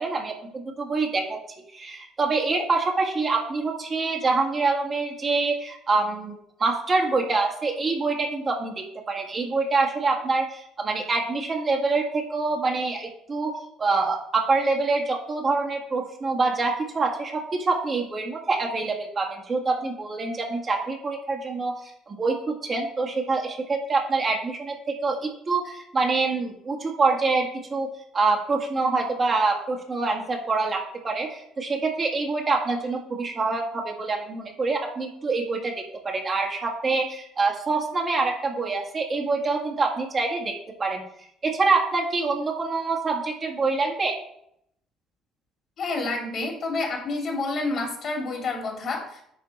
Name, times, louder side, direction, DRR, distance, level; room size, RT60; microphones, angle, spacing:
voice 1, 0.0-1.4 1.7-35.7 36.0-41.0 41.4-44.2, right 3 dB, 40° right, 1 dB, 1.8 m, -26 dB
voice 2, 45.8-49.2, left 3 dB, 55° left, 2 dB, 2.5 m, -29 dB
10.0 x 3.6 x 4.2 m, 0.73 s
hypercardioid pair, 60°, 0 cm